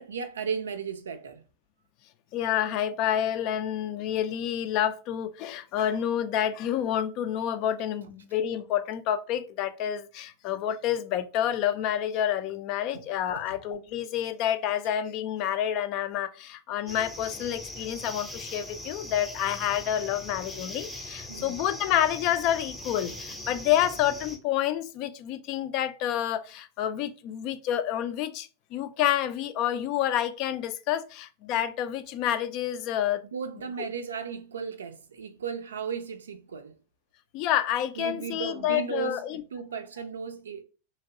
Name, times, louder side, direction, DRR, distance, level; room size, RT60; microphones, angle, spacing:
voice 1, 0.0-1.4 12.9-13.0 21.3-21.6 33.3-36.7 38.0-40.6, right 6 dB, 70° right, 0.4 m, -35 dB
voice 2, 2.3-33.2 37.3-39.4, left 11 dB, 40° left, 0.3 m, -28 dB
sound 1, 16.9-24.4, left 1 dB, 5° left, 0.7 m, -41 dB
2.9 x 2.8 x 2.7 m
figure-of-eight pair, 90°, 0 cm